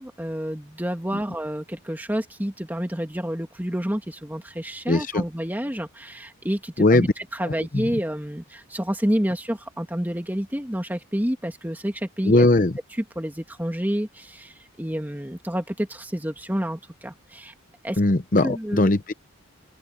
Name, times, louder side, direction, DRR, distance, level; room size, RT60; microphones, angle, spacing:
voice 1, 0.0-12.5 13.2-17.5 17.8-18.0 18.4-18.9, equal, 10° right, 1.9 m, -29 dB
voice 2, 4.9-5.2 6.8-7.1 7.4-7.8 12.2-12.7 18.0-19.1, left 2 dB, 40° left, 0.7 m, -20 dB
open air
head